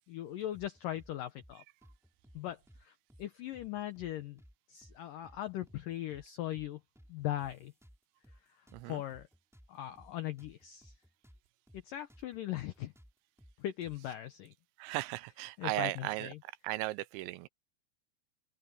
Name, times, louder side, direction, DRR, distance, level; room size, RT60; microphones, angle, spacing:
voice 1, 0.1-1.6 2.3-4.4 4.7-6.8 7.1-7.7 8.9-9.3 9.7-10.9 11.9-12.9 13.6-14.5 15.6-16.4, left 13 dB, 85° left, 1.9 m, -39 dB
sound 1, 0.5-1.1 1.4-1.5 1.8-2.8 3.1-3.3 3.5-4.5 4.8-5.0 5.2-6.3 6.5-6.7 7.0-8.4 8.7-11.4 11.7-11.8 12.1-14.1, equal, ahead, 4.1 m, -59 dB
voice 2, 8.7-9.0 14.8-16.3 16.6-17.5, right 19 dB, 90° right, 3.1 m, -36 dB
open air
omnidirectional pair, 5.1 m